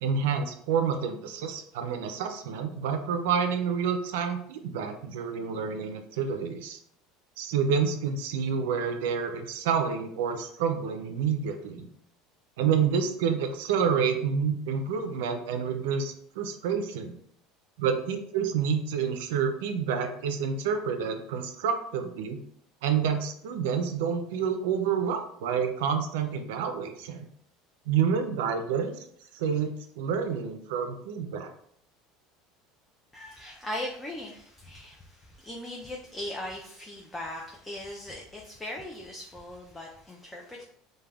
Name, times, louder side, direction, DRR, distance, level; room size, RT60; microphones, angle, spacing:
voice 1, 0.0-6.8 7.4-11.9 12.6-17.1 17.8-22.4 22.8-27.2 27.9-28.9 29.3-31.5, right 6 dB, 90° right, 7 dB, 0.4 m, -28 dB
voice 2, 33.1-40.6, left 1 dB, 10° left, -1 dB, 0.3 m, -39 dB
2.2 x 2.1 x 3.3 m, 0.67 s
cardioid pair, 145°, 0 cm